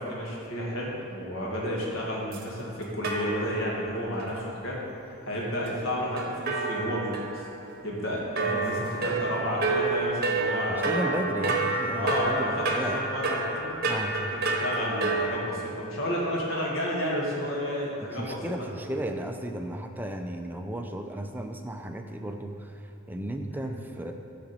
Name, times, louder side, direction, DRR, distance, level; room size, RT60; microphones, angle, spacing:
voice 1, 0.0-4.8 5.3-7.2 7.8-11.0 11.9-12.6 12.9-13.8 14.1-18.4 23.5-23.8, equal, 60° left, -4 dB, 2.0 m, -31 dB
sound 1, 2.3-2.4 3.0-3.8 4.2-4.3 6.2-7.8 8.4-15.3, right 3 dB, 45° right, 0.9 m, -29 dB
voice 2, 10.7-13.0 13.9-14.2 18.0-22.8 23.1-24.1, right 1 dB, 10° right, 4 dB, 0.4 m, -34 dB
13.5 x 5.1 x 4.4 m, 2.9 s
head